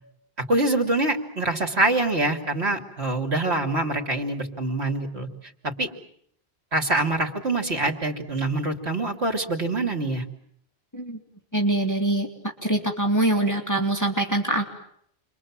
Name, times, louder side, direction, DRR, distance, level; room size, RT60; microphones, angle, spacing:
voice 1, 0.5-5.3 5.6-5.9 6.7-10.2, right 2 dB, 90° right, 3 dB, 3.1 m, -25 dB
voice 2, 11.5-12.3 12.6-14.7, right 1 dB, 15° left, 2 dB, 2.5 m, -23 dB
29.5 x 23.5 x 7.5 m, 0.68 s
omnidirectional pair, 1.1 m